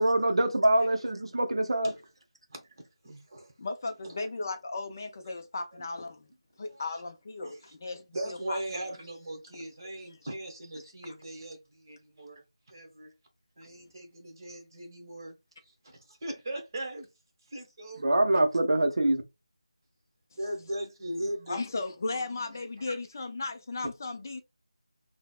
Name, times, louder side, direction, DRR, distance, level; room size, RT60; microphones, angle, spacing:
voice 1, 0.0-1.9 18.0-19.2, right 1 dB, 55° right, 0.5 m, -24 dB
voice 2, 3.0-3.5 6.7-7.0 7.4-7.6 8.1-13.1 13.6-15.3 15.8-17.1 17.5-18.0 20.3-21.8 22.1-22.2 22.8-23.0, right 1 dB, 35° right, 1.1 m, -39 dB
voice 3, 3.6-6.3 6.6-8.9 21.5-24.4, left 3 dB, 30° left, 0.4 m, -36 dB
3.8 x 2.0 x 2.3 m
figure-of-eight pair, 165°, 3 cm